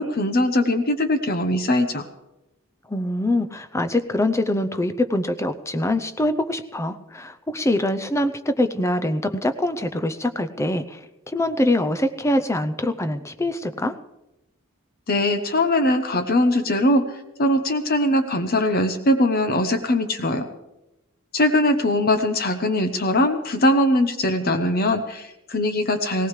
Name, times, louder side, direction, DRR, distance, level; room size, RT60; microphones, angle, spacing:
voice 1, 0.0-2.1 15.1-17.1 17.4-20.5 21.3-26.3, left 1 dB, 45° left, 8 dB, 0.9 m, -21 dB
voice 2, 2.9-11.0 11.3-13.9, left 1 dB, 15° left, 9 dB, 0.6 m, -24 dB
19.0 x 18.0 x 3.3 m, 0.94 s
head